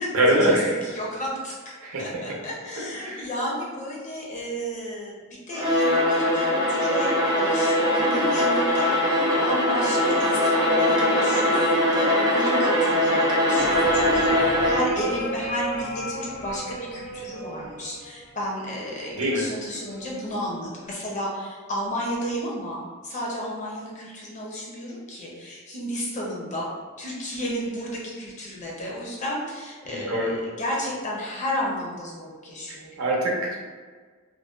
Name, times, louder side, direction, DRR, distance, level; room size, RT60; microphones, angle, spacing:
voice 1, 0.1-0.9 1.8-2.0 2.8-3.3 19.2-19.4 29.8-30.3 33.0-33.6, right 1 dB, 80° right, -2 dB, 0.6 m, -23 dB
voice 2, 0.8-1.6 2.0-5.1 5.5-26.7 27.0-33.0, equal, 35° left, -4 dB, 0.5 m, -32 dB
Bowed string instrument, 5.5-15.0, left 1 dB, 20° right, 0.4 m, -21 dB
sound 1, 13.6-18.6 19.7-20.2, right 1 dB, 75° left, 0.7 m, -34 dB
2.5 x 2.1 x 2.4 m, 1.5 s
head